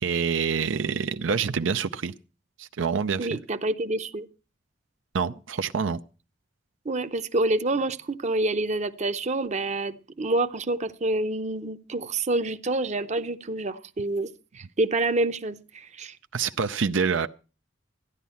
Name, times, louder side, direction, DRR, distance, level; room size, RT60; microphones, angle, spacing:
voice 1, 0.0-2.1 2.6-3.4 5.1-6.0 16.3-17.3, right 5 dB, 80° right, 0.6 m, -26 dB
voice 2, 3.2-4.3 6.8-14.3 14.5-16.2, right 2 dB, 40° right, 0.7 m, -27 dB
14.0 x 10.5 x 5.6 m
head